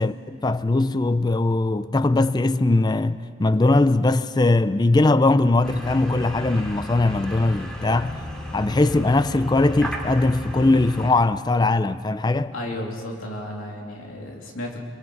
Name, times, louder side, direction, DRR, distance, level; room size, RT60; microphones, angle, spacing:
voice 1, 0.0-8.2 8.5-12.5, left 2 dB, 20° left, 0.4 m, -20 dB
sound 1, 5.6-11.1, equal, 5° left, 2.8 m, -34 dB
voice 2, 12.5-14.8, left 1 dB, 85° left, 3.1 m, -33 dB
27.0 x 24.0 x 4.7 m
head